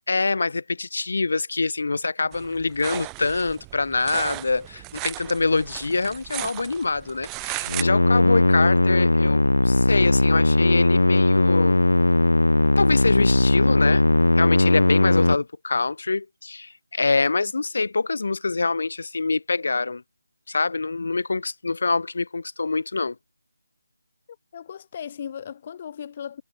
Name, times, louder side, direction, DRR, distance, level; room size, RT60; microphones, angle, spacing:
voice 1, 0.1-11.8 12.8-14.0 14.4-20.0 20.5-23.2, left 3 dB, 60° left, 7.7 m, -25 dB
sound 1, 2.3-7.8, right 30 dB, 15° right, 1.8 m, -35 dB
sound 2, 7.7-15.4, left 2 dB, 80° left, 0.9 m, -18 dB
voice 2, 24.5-26.4, left 8 dB, 30° left, 5.6 m, -36 dB
figure-of-eight pair, 160°, 0 cm